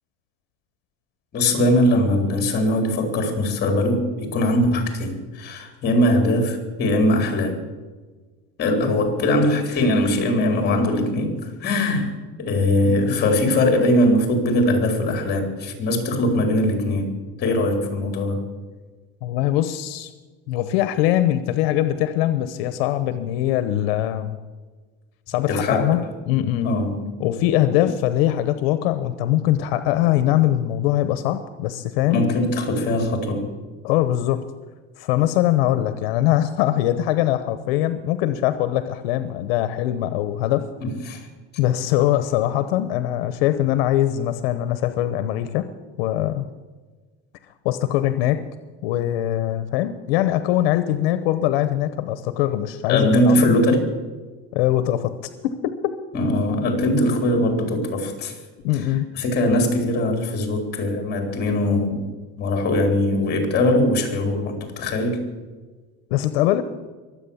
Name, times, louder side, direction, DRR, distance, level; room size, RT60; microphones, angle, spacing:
voice 1, 1.3-7.6 8.6-17.1 17.4-18.4 25.5-26.0 26.6-27.0 32.1-33.5 40.8-41.2 52.9-53.8 56.1-58.4 59.1-62.0 62.4-65.2, left 1 dB, 35° left, 4 dB, 4.0 m, -21 dB
voice 2, 12.8-13.2 19.2-20.1 20.5-24.4 25.3-26.8 27.2-32.2 33.8-34.4 35.0-40.7 41.6-45.7 46.0-46.5 47.6-48.4 48.8-53.4 54.5-55.1 55.4-56.0 58.6-59.1 66.1-66.6, left 13 dB, 85° left, 11 dB, 1.0 m, -22 dB
23.0 x 8.6 x 7.2 m, 1.4 s
cardioid pair, 145°, 29 cm